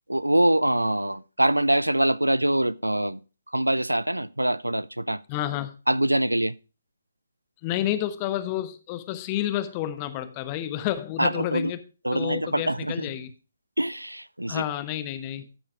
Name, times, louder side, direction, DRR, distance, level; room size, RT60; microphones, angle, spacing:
voice 1, 0.1-3.2 3.5-5.2 5.9-6.5 11.2-11.7 12.0-13.1 13.8-14.6, right 1 dB, 90° right, 0.4 m, -24 dB
voice 2, 5.3-5.7 7.6-11.8 12.1-13.3 14.5-15.4, left 13 dB, 25° left, 1.0 m, -30 dB
13.5 x 5.1 x 4.7 m
figure-of-eight pair, 140°, 0 cm